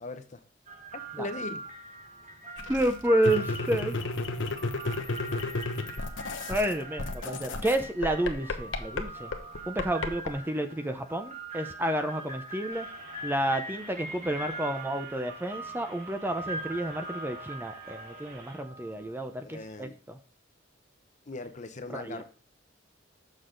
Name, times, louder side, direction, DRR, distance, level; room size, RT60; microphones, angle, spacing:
voice 1, 0.0-0.4 1.2-1.6 19.4-20.0 21.3-22.2, left 2 dB, 40° left, 9 dB, 0.8 m, -39 dB
sound 1, 0.7-19.7, right 1 dB, 40° right, 1.2 m, -42 dB
sound 2, 2.6-6.7 7.0-10.3, left 3 dB, 75° left, 1.0 m, -32 dB
voice 2, 2.7-4.0 6.5-9.3 9.7-12.9 13.2-20.2 21.9-22.2, right 1 dB, 10° right, 8 dB, 0.5 m, -30 dB
sound 3, 12.7-18.6, right 3 dB, 55° right, 2.5 m, -51 dB
6.7 x 6.5 x 3.8 m, 0.38 s
head